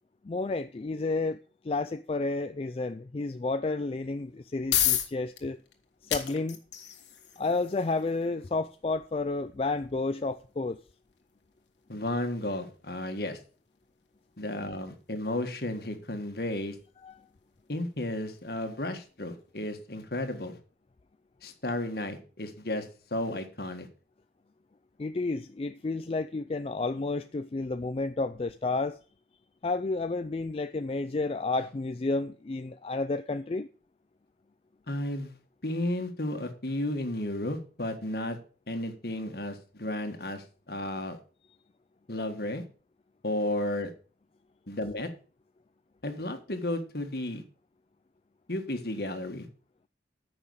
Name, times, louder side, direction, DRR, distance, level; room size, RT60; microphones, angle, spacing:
voice 1, 0.2-1.4 1.6-5.6 6.0-6.6 7.4-10.8 17.0-17.2 25.0-29.0 29.6-33.7, left 3 dB, 30° left, 0.4 m, -31 dB
sound 1, 4.2-19.1, left 10 dB, 85° left, 1.6 m, -37 dB
voice 2, 11.9-13.4 14.4-16.8 17.7-20.6 21.4-23.9 34.9-35.4 35.6-38.4 38.7-41.2 42.1-42.6 43.2-43.9 44.7-45.1 46.0-47.4 48.5-49.5, left 1 dB, 55° left, 1.6 m, -33 dB
9.5 x 6.0 x 6.4 m
head